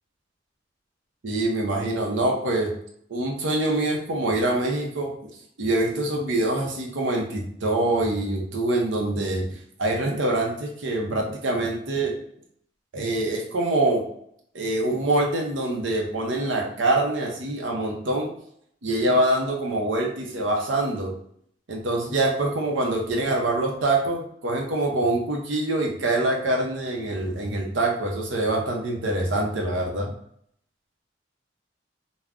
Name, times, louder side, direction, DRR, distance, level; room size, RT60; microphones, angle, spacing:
voice 1, 1.2-2.7 3.1-5.2 5.6-9.5 9.8-12.1 12.9-14.0 14.5-18.3 18.8-21.2 21.7-30.1, right 2 dB, 85° right, 0 dB, 0.6 m, -25 dB
2.4 x 2.1 x 3.5 m, 0.68 s
head